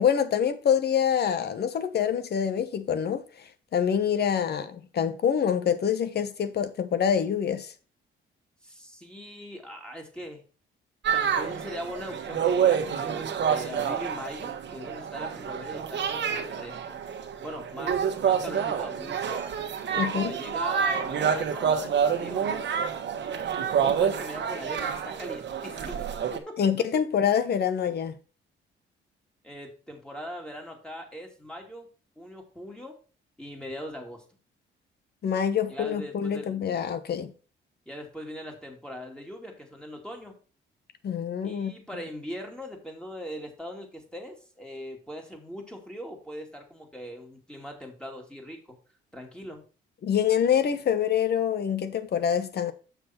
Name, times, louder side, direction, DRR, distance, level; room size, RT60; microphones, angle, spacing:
voice 1, 0.0-7.7 20.0-20.4 26.6-28.1 35.2-37.3 41.0-41.7 50.0-52.7, left 8 dB, 55° left, 1.0 m, -26 dB
voice 2, 8.6-10.4 11.1-17.0 17.4-19.5 19.9-22.8 23.8-26.1 26.3-26.5 29.4-31.9 32.2-33.0 33.4-34.2 35.7-36.8 37.9-40.4 41.4-48.8 49.1-49.6, equal, 5° left, 2.6 m, -40 dB
sound 1, 11.0-26.4, right 7 dB, 65° right, 1.3 m, -28 dB
6.9 x 6.5 x 4.5 m
cardioid pair, 90°, 20 cm